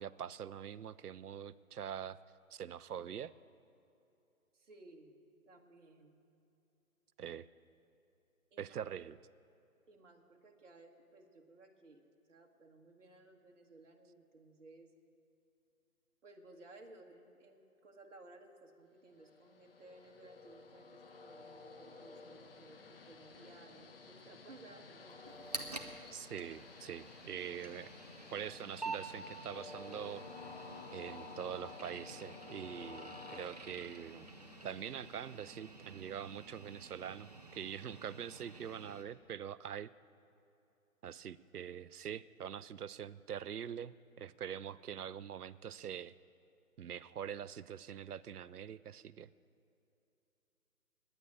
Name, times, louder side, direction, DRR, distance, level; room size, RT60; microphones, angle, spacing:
voice 1, 0.0-2.2 2.5-3.3 7.2-7.5 8.6-9.2 26.1-27.9 28.3-30.2 30.9-34.3 34.6-39.9 41.0-46.1 46.8-49.3, right 8 dB, 85° right, 17 dB, 0.6 m, -44 dB
voice 2, 4.5-5.2 5.5-6.1 8.5-8.7 9.9-14.9 16.2-25.2, right 2 dB, 55° right, 2 dB, 1.5 m, -58 dB
Train, 19.2-35.9, left 4 dB, 40° left, 0.9 m, -53 dB
sound 1, 25.2-39.0, right 3 dB, 30° right, 0.5 m, -49 dB
9.8 x 9.3 x 9.8 m, 2.8 s
figure-of-eight pair, 155°, 44 cm